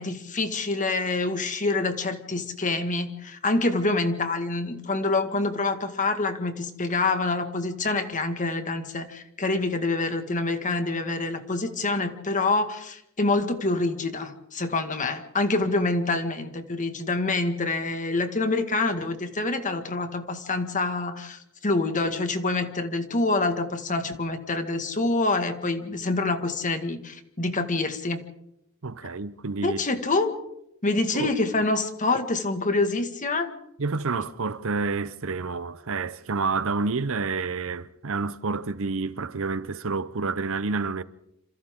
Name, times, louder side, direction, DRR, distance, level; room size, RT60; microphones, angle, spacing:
voice 1, 0.0-28.2 29.6-30.4 30.8-33.5, left 3 dB, 35° left, 1.9 m, -26 dB
voice 2, 28.8-29.8 31.1-31.3 33.8-41.0, right 4 dB, 70° right, 0.8 m, -29 dB
27.5 x 27.0 x 3.8 m
head